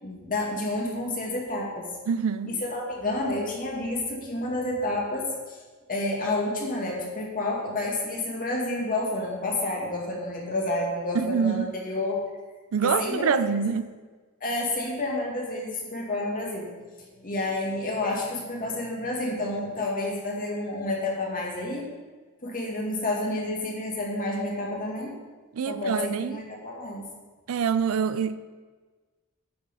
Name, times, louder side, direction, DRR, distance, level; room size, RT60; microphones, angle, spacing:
voice 1, 0.0-1.9 2.4-5.6 5.9-12.2 12.8-13.8 14.4-16.7 17.0-21.9 22.4-25.1 25.7-27.1, left 2 dB, 40° left, 2.2 m, -30 dB
voice 2, 2.1-2.5 11.2-11.7 12.7-13.9 25.5-26.4 27.5-28.4, right 6 dB, 65° right, 0.4 m, -25 dB
9.4 x 6.8 x 5.3 m
head